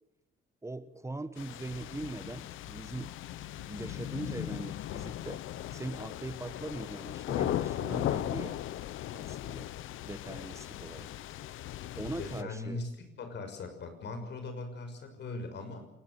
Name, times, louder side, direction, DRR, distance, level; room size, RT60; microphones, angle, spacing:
voice 1, 0.6-3.1 3.6-5.4 5.7-8.6 9.1-9.7 10.0-11.1 12.0-12.8, right 2 dB, 15° right, 13 dB, 1.2 m, -41 dB
sound 1, 1.4-12.4, left 13 dB, 85° left, 0.9 m, -37 dB
voice 2, 12.2-15.9, left 3 dB, 60° left, 8 dB, 6.4 m, -40 dB
28.0 x 19.0 x 7.7 m, 0.89 s
cardioid pair, 90°, 20 cm